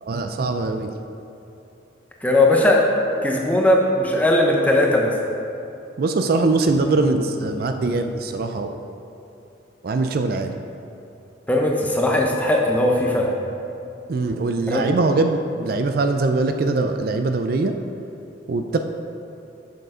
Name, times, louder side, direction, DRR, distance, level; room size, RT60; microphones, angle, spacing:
voice 1, 0.0-0.9 6.0-8.8 9.8-10.6 14.1-17.8 18.5-18.8, right 3 dB, 55° right, 6 dB, 0.4 m, -22 dB
voice 2, 2.2-2.9 3.2-5.2 11.5-13.3 14.7-14.9, left 1 dB, 10° left, -1 dB, 0.8 m, -18 dB
6.7 x 6.6 x 4.9 m, 2.8 s
head